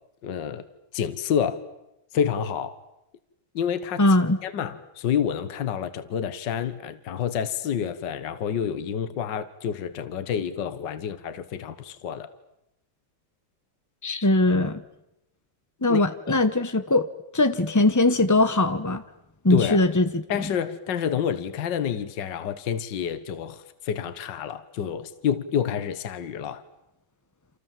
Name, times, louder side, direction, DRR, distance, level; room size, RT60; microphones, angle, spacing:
voice 1, 0.2-0.7 0.9-1.6 2.1-2.8 3.6-4.0 4.4-12.3 15.9-16.4 19.5-19.8 20.3-26.6, left 8 dB, 65° left, 12 dB, 1.9 m, -28 dB
voice 2, 4.0-4.4 14.0-14.8 15.8-17.1 17.3-19.0 19.4-20.2, left 2 dB, 30° left, 10 dB, 0.3 m, -21 dB
29.0 x 27.5 x 7.5 m, 0.87 s
omnidirectional pair, 2.2 m